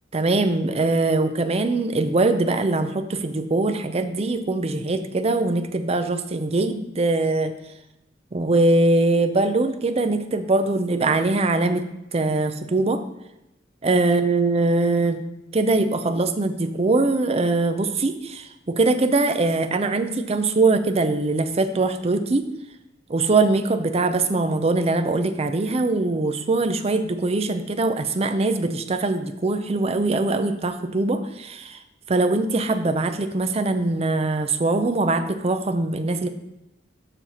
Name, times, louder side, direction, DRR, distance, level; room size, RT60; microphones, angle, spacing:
voice 1, 0.1-7.5 8.3-11.8 12.1-13.0 13.8-15.2 15.5-22.4 23.1-31.8 32.1-36.3, right 2 dB, 35° right, 9 dB, 0.5 m, -22 dB
7.0 x 5.9 x 4.2 m, 0.89 s
head